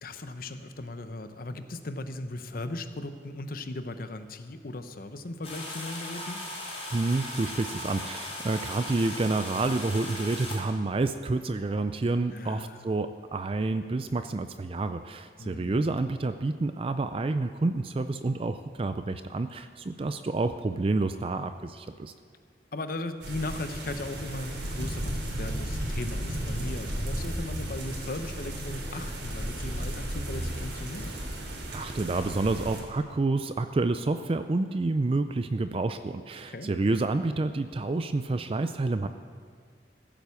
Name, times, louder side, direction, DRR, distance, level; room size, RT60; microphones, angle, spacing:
voice 1, 0.0-6.4 12.3-12.9 15.4-15.8 22.7-31.1 36.5-36.7, left 2 dB, 55° left, 10 dB, 0.8 m, -37 dB
sound 1, 5.4-10.6, left 1 dB, 35° left, 4.0 m, -38 dB
voice 2, 6.9-22.1 31.7-39.1, right 3 dB, 30° right, 10 dB, 0.4 m, -29 dB
sound 2, 23.2-32.8, equal, 75° right, 3.2 m, -34 dB
15.5 x 9.0 x 7.0 m, 2.1 s
head